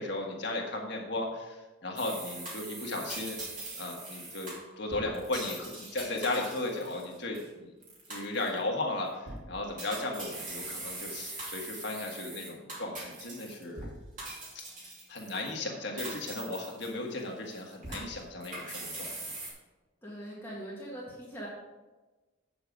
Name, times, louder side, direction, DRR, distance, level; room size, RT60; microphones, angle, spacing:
voice 1, 0.0-3.4 3.8-7.7 8.1-13.9 14.5-14.7 15.1-19.1, left 2 dB, 60° left, 0 dB, 1.6 m, -35 dB
sound 1, 2.0-7.5 7.8-8.6 9.1-9.4 9.8-13.9 14.2-15.5 16.0-17.2 17.5-19.5, right 2 dB, 40° right, 2.8 m, -42 dB
voice 2, 20.0-21.5, right 1 dB, 10° left, -6 dB, 1.8 m, -41 dB
8.2 x 6.9 x 5.2 m, 1.2 s
head